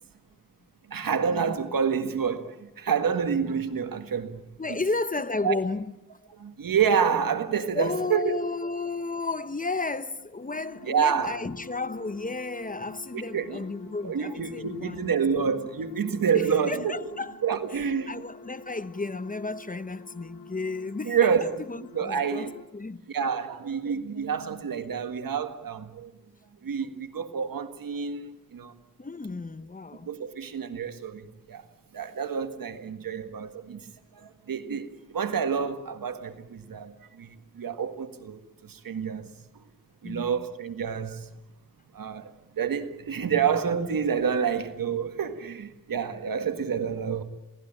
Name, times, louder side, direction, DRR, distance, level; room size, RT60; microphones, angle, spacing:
voice 1, 0.9-4.4 5.4-5.6 6.3-8.4 10.8-11.4 13.1-13.6 14.0-17.1 17.4-18.2 21.1-21.6 21.9-22.5 23.1-26.1 26.6-28.8 30.1-31.6 31.9-39.3 40.0-41.3 41.9-47.2, right 7 dB, 90° right, 1.8 m, -28 dB
voice 2, 4.6-5.9 7.7-15.1 16.3-17.4 17.7-23.0 29.0-30.1 40.0-40.5, left 3 dB, 25° left, 0.9 m, -33 dB
sound 1, 10.4-22.7, left 4 dB, 80° left, 2.5 m, -48 dB
28.0 x 18.5 x 8.9 m
wide cardioid pair, 85°, 33 cm